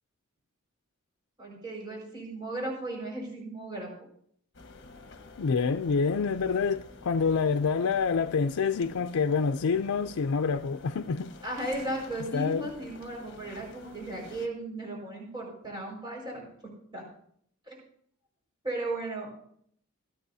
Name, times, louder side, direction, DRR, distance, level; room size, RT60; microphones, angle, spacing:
voice 1, 1.4-3.9 11.4-16.5 16.9-17.0 17.7-17.8 18.6-19.5, right 1 dB, 20° right, 5.1 m, -36 dB
sound 1, 4.5-14.5, left 3 dB, 55° left, 1.3 m, -49 dB
voice 2, 5.4-11.3 12.3-12.7, left 5 dB, 85° left, 0.4 m, -27 dB
26.5 x 9.0 x 2.7 m
head